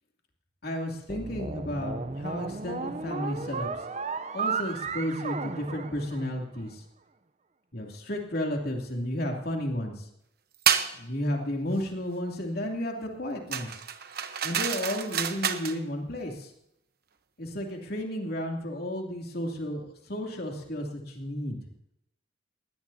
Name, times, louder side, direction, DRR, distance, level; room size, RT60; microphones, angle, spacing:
voice 1, 0.6-3.8 4.3-6.8 7.7-10.1 10.9-13.8 14.4-16.5 17.4-21.6, left 1 dB, 55° left, 1 dB, 2.8 m, -33 dB
sound 1, 1.1-6.6, right 4 dB, 35° right, 0.7 m, -34 dB
sound 2, 10.7-10.9 13.5-15.8, right 8 dB, 55° right, 1.0 m, -28 dB
21.0 x 17.5 x 2.8 m, 0.77 s
head